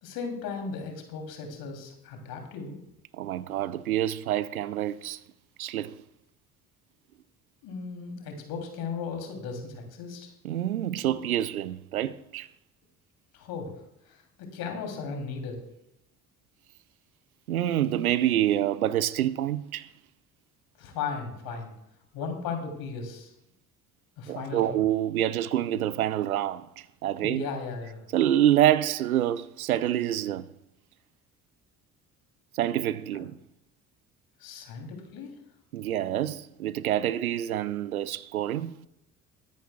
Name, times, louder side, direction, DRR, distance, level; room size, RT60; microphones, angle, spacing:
voice 1, 0.0-2.8 7.6-10.3 13.3-13.7 14.0-15.6 20.8-21.7 22.1-23.3 24.2-24.8 27.2-28.0 33.1-33.2 34.4-35.3, left 5 dB, 55° left, 3.0 m, -36 dB
voice 2, 3.1-5.2 5.6-6.0 10.4-12.5 17.5-19.9 24.3-27.5 28.1-30.5 32.5-33.4 35.7-38.8, right 12 dB, 80° right, 0.6 m, -27 dB
23.0 x 10.5 x 2.3 m
figure-of-eight pair, 50°, 43 cm